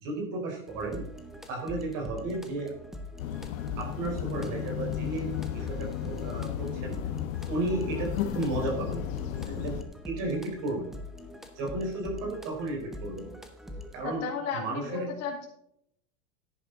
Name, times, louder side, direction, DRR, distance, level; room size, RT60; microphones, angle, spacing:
voice 1, 0.0-1.0 1.5-2.7 3.8-7.0 7.5-9.0 9.5-9.8 10.0-10.9 11.6-13.3 13.9-14.2 14.5-15.1, right 2 dB, 50° right, 1 dB, 4.2 m, -33 dB
sound 1, 0.7-14.1, left 1 dB, ahead, 1.1 m, -44 dB
sound 2, 3.2-9.8, left 10 dB, 75° left, 1.4 m, -34 dB
voice 2, 14.0-15.5, left 5 dB, 40° left, 0 dB, 2.5 m, -34 dB
10.0 x 10.0 x 3.9 m, 0.71 s
supercardioid pair, 140°, 40 cm